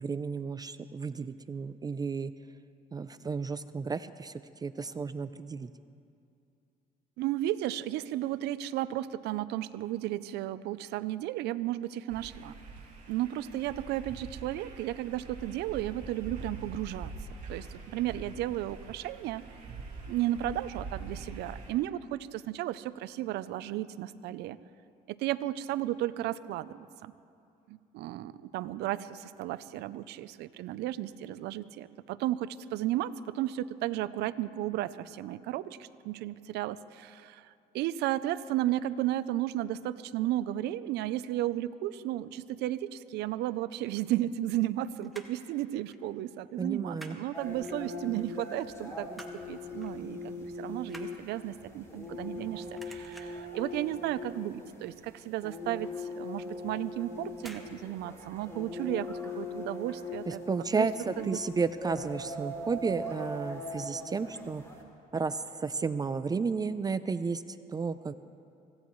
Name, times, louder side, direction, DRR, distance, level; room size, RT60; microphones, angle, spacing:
voice 1, 0.0-2.3 2.9-5.7 46.6-47.2 60.3-64.6 65.1-68.1, right 4 dB, 25° right, 13 dB, 0.4 m, -33 dB
voice 2, 7.2-12.5 13.1-17.1 17.5-19.4 20.1-24.6 25.1-27.1 27.7-49.1 49.5-60.4 60.8-60.9 61.2-61.4, right 14 dB, 80° right, 14 dB, 0.5 m, -34 dB
sound 1, 12.1-21.7, right 4 dB, 45° right, 4.7 m, -44 dB
sound 2, 44.0-44.7 45.0-45.5 45.9-46.1 46.4-47.2 47.6-48.2 48.6-49.5 49.8-50.0 50.3-52.5 52.7-53.5 53.9-54.3 54.5-54.6 55.0-55.1 55.5-55.6 56.5-56.8 57.4-57.7 58.0-58.1, right 1 dB, ahead, 1.6 m, -50 dB
sound 3, 47.3-64.8, left 2 dB, 15° left, 2.7 m, -41 dB
25.0 x 16.5 x 3.1 m, 2.5 s
cardioid pair, 110°, 17 cm